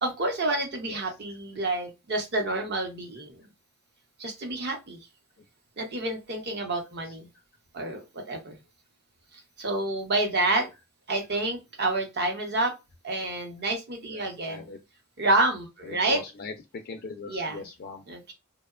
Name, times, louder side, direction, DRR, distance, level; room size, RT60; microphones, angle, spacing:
voice 1, 0.0-3.4 4.2-5.0 5.8-7.3 7.7-8.6 9.6-10.7 11.1-12.7 13.0-14.6 15.2-16.2 17.3-17.6 18.1-18.3, right 2 dB, 50° right, 4 dB, 0.8 m, -28 dB
voice 2, 0.8-1.4 7.0-7.4 10.6-10.7 14.0-14.8 15.8-18.1, left 4 dB, 45° left, 5 dB, 0.3 m, -41 dB
2.8 x 2.1 x 2.3 m, 0.24 s
head